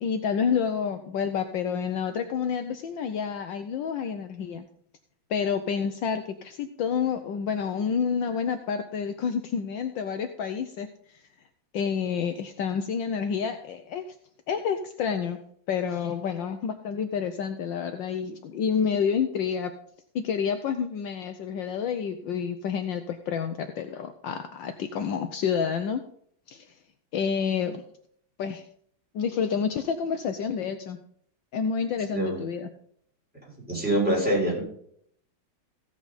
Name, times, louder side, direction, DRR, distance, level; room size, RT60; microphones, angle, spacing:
voice 1, 0.0-4.7 5.3-11.2 11.7-14.1 14.5-15.4 15.7-19.7 20.1-26.0 26.5-26.7 27.1-27.8 28.4-28.6 29.1-31.0 31.5-32.7, left 7 dB, 70° left, 8 dB, 1.4 m, -29 dB
voice 2, 33.7-34.6, right 1 dB, 5° right, -4 dB, 6.2 m, -24 dB
15.5 x 8.3 x 4.2 m, 0.64 s
omnidirectional pair, 2.2 m